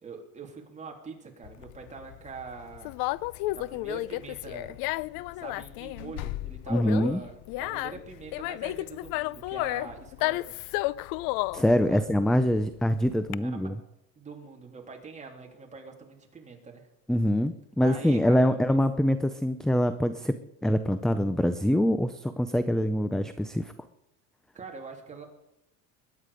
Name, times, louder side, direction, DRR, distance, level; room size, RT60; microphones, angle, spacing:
voice 1, 0.0-3.0 3.5-4.8 5.3-10.6 11.9-12.0 13.3-13.7 14.1-16.9 17.8-18.6 24.5-25.3, right 4 dB, 20° right, 1 dB, 3.3 m, -43 dB
Conversation, 1.4-13.3, left 19 dB, 65° left, 0.5 m, -33 dB
voice 2, 6.7-7.2 11.5-13.7 17.1-20.4 20.6-23.7, equal, ahead, 11 dB, 0.4 m, -24 dB
22.0 x 9.4 x 5.1 m, 0.88 s
cardioid pair, 135°, 38 cm